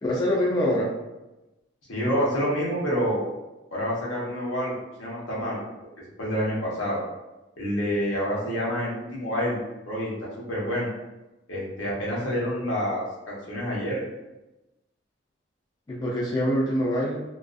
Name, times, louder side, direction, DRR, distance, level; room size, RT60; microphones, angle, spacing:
voice 1, 0.0-0.9 15.9-17.2, equal, 20° left, -5 dB, 0.3 m, -24 dB
voice 2, 1.9-3.2 3.7-4.7 5.0-5.6 6.2-7.0 7.6-9.6 9.9-10.9 11.5-14.0, equal, 75° left, -5 dB, 0.9 m, -27 dB
2.4 x 2.3 x 2.4 m, 1.0 s
head